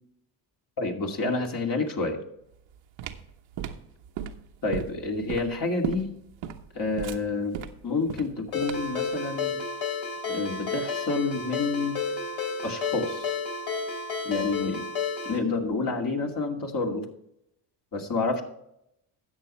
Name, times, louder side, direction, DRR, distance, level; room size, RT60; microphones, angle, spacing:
voice 1, 0.8-2.2 4.6-6.2 6.7-9.6 10.3-12.0 12.6-13.3 14.2-14.9 15.2-17.1 17.9-18.4, left 3 dB, 45° left, 1 dB, 2.6 m, -29 dB
sound 1, 2.5-9.0, right 9 dB, 75° right, 1.1 m, -36 dB
Ringtone, 8.5-15.4, left 5 dB, 85° left, 3.2 m, -31 dB
13.5 x 8.6 x 3.2 m, 0.78 s
cardioid pair, 80°, 46 cm